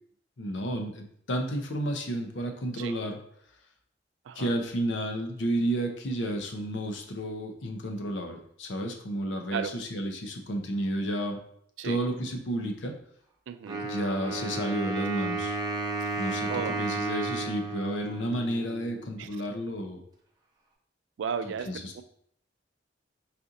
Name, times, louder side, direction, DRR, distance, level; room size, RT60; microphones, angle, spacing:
voice 1, 0.4-3.2 4.3-11.4 11.8-12.9 13.8-15.6 16.2-16.5 16.8-20.0 21.7-21.9, right 1 dB, 70° left, 4 dB, 0.7 m, -31 dB
voice 2, 13.5-13.9 16.0-16.2 16.5-16.8 19.2-19.3 21.2-22.0, right 7 dB, 75° right, 11 dB, 0.3 m, -35 dB
Wind instrument woodwind instrument, 13.7-19.3, right 3 dB, 20° right, 0.6 m, -33 dB
4.2 x 2.5 x 3.9 m, 0.67 s
head